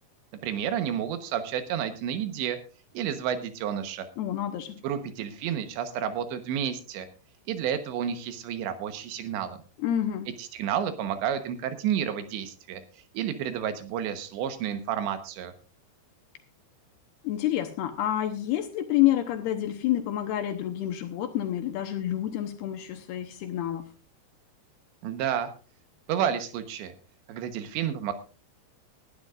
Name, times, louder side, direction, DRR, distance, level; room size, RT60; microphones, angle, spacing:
voice 1, 0.4-2.6 3.0-4.1 4.8-7.1 7.5-9.6 10.4-12.8 13.2-15.5 25.0-25.5 26.1-26.9 27.3-28.1, right 9 dB, 85° right, 8 dB, 3.4 m, -30 dB
voice 2, 4.2-4.8 9.8-10.3 17.2-23.8, left 12 dB, 75° left, 6 dB, 2.8 m, -28 dB
19.5 x 12.0 x 2.5 m, 0.35 s
omnidirectional pair, 5.0 m